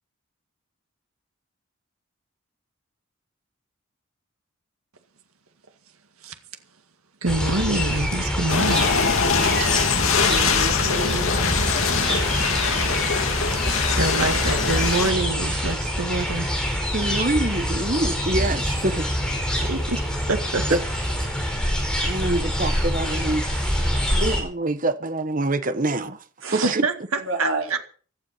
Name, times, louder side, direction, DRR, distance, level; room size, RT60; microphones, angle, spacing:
voice 1, 7.2-8.9 9.6-9.7 13.6-16.5 19.6-20.8 22.2-22.3 26.6-27.8, right 2 dB, 85° right, 1.9 m, -26 dB
sound 1, 7.3-24.4, equal, 5° left, 5.0 m, -25 dB
sound 2, 8.5-15.1, left 5 dB, 70° left, 2.3 m, -23 dB
voice 2, 10.3-11.3 17.2-17.3 18.4-18.5 19.7-19.8 26.4-26.7 27.3-27.6, right 2 dB, 65° right, 5.0 m, -30 dB
voice 3, 16.9-19.1 19.6-19.7 20.7-20.8 22.0-23.5 24.1-26.2 26.5-26.8, right 2 dB, 40° right, 1.2 m, -25 dB
16.5 x 12.5 x 5.6 m
head